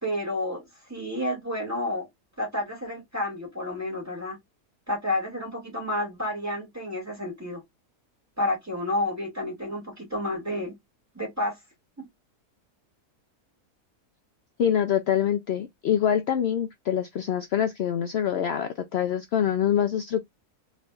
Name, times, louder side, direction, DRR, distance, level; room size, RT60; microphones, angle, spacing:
voice 1, 0.0-2.1 2.4-4.4 4.9-7.6 8.4-10.8 11.1-11.6 12.0-12.1, left 1 dB, 10° right, 2.3 m, -30 dB
voice 2, 14.6-20.2, left 9 dB, 70° left, 0.6 m, -25 dB
4.0 x 3.4 x 2.3 m
omnidirectional pair, 1.6 m